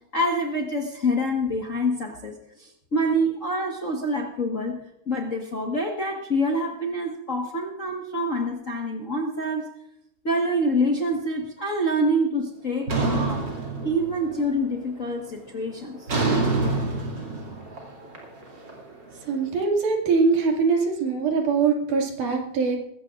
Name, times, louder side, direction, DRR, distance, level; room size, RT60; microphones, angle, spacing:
voice 1, 0.1-2.3 2.6-9.7 10.2-13.5 13.8-16.0, equal, 40° left, 0 dB, 1.2 m, -26 dB
sound 1, 12.9-14.4 14.8-15.2 16.1-19.1, right 3 dB, 35° right, 3.2 m, -26 dB
voice 2, 19.3-22.8, right 4 dB, 90° right, 1 dB, 3.9 m, -22 dB
20.5 x 16.0 x 2.5 m, 0.76 s
omnidirectional pair, 3.5 m